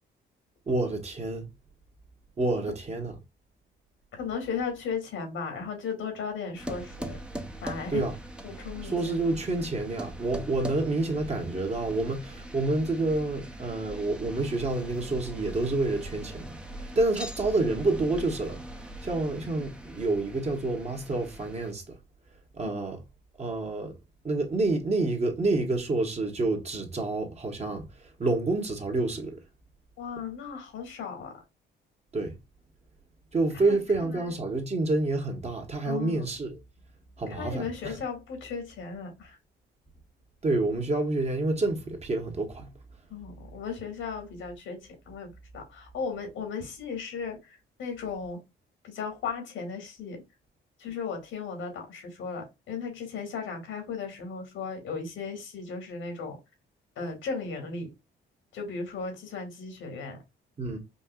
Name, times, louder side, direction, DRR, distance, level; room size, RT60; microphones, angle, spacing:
voice 1, 0.7-1.5 2.4-3.1 7.9-8.1 8.8-18.6 19.0-21.8 22.5-23.0 23.4-23.9 24.2-27.9 28.2-29.4 32.1-32.4 33.3-36.6 37.2-38.0 40.4-42.7 60.6-60.8, right 2 dB, 35° right, 1.3 m, -28 dB
voice 2, 4.1-7.2 7.6-8.0 8.4-9.2 30.0-31.4 33.5-34.3 35.9-36.3 37.3-39.4 43.1-44.8 45.1-48.4 48.8-50.2 50.8-56.4 57.0-57.9 58.5-60.2, left 5 dB, 80° left, 2.1 m, -36 dB
sound 1, 6.5-21.7, right 1 dB, 5° right, 0.8 m, -41 dB
5.3 x 2.6 x 2.4 m
cardioid pair, 90°, 20 cm